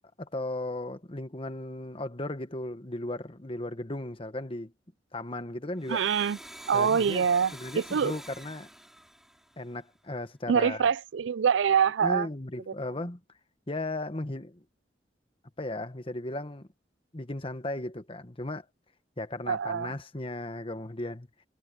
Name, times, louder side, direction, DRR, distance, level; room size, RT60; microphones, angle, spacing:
voice 1, 0.2-4.7 5.1-6.0 6.7-8.7 9.6-10.9 12.0-13.2 13.7-14.6 15.6-16.7 17.1-18.6 19.2-21.3, left 2 dB, 30° left, 1.4 m, -36 dB
Domestic sounds home sounds, 5.7-10.2, equal, ahead, 4.5 m, -47 dB
voice 2, 5.9-6.4 6.7-8.1 10.5-12.3 19.5-19.9, right 7 dB, 75° right, 0.4 m, -25 dB
head